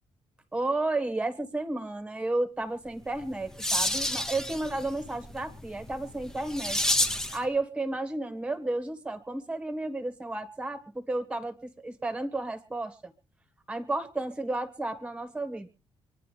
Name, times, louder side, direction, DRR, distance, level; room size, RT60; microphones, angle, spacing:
voice 1, 0.5-6.8 7.3-13.1 13.7-15.7, right 2 dB, 10° right, 8 dB, 1.6 m, -32 dB
sound 1, 3.0-7.5, left 1 dB, 5° left, 0.9 m, -30 dB
26.5 x 10.5 x 3.4 m, 0.36 s
cardioid pair, 175°, 10 cm